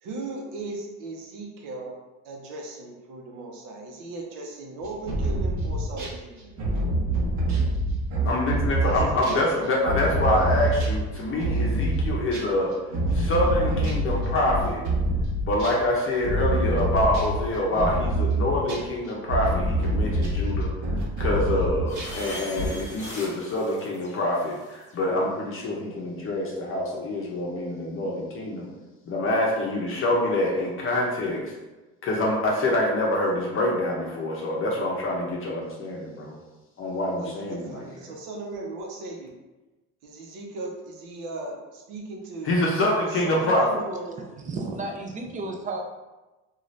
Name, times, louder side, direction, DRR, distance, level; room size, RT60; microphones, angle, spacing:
voice 1, 0.0-1.9 2.2-6.5 8.8-9.9 37.1-39.3 40.0-42.6 43.1-44.5, right 2 dB, 85° right, 0 dB, 0.8 m, -37 dB
sound 1, 4.8-6.2 6.6-12.5 12.9-22.2 22.6-22.7, right 1 dB, 65° right, 0.9 m, -26 dB
voice 2, 8.2-12.7 13.1-14.8 15.4-20.7 21.2-28.7 29.1-31.5 32.0-36.3 36.8-37.6 42.4-43.7, left 1 dB, 40° left, -3 dB, 0.6 m, -26 dB
sound 2, 21.9-24.9, left 1 dB, 25° left, 0.9 m, -40 dB
voice 3, 44.4-45.9, right 2 dB, 25° right, 2 dB, 0.4 m, -32 dB
2.6 x 2.4 x 3.1 m, 1.1 s
cardioid pair, 115°, 31 cm